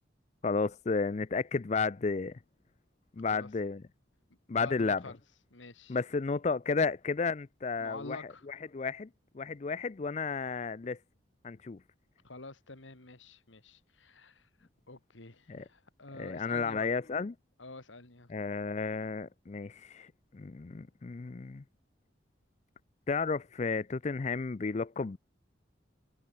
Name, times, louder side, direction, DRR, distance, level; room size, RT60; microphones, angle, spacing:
voice 1, 0.4-2.4 3.2-3.8 4.5-5.0 5.9-9.1 9.3-11.0 11.4-11.8 15.5-15.6 16.2-17.3 18.3-21.6 23.1-25.2, left 4 dB, 35° left, 0.4 m, -32 dB
voice 2, 3.2-3.5 4.5-5.2 5.5-6.0 7.8-8.5 12.2-14.5 14.9-16.9 17.6-18.3, left 3 dB, 85° left, 2.6 m, -48 dB
head